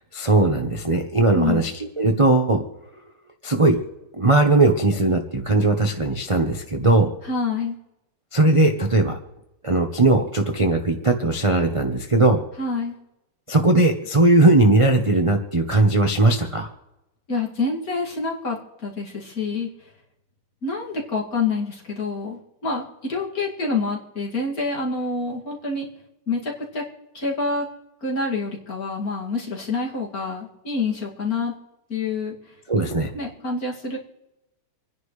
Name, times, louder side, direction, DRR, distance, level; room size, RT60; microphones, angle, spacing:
voice 1, 0.1-2.6 3.4-3.8 4.2-7.1 8.3-9.2 9.6-12.4 13.5-16.7 32.7-33.1, right 2 dB, 25° right, 3 dB, 0.7 m, -19 dB
voice 2, 1.3-1.6 7.2-7.8 12.6-13.0 17.3-19.7 20.6-25.9 26.3-26.8 27.1-27.7 28.0-31.5 31.9-32.5 33.1-34.0, left 3 dB, 40° left, -2 dB, 2.8 m, -27 dB
27.5 x 10.5 x 3.3 m, 0.91 s
omnidirectional pair, 2.4 m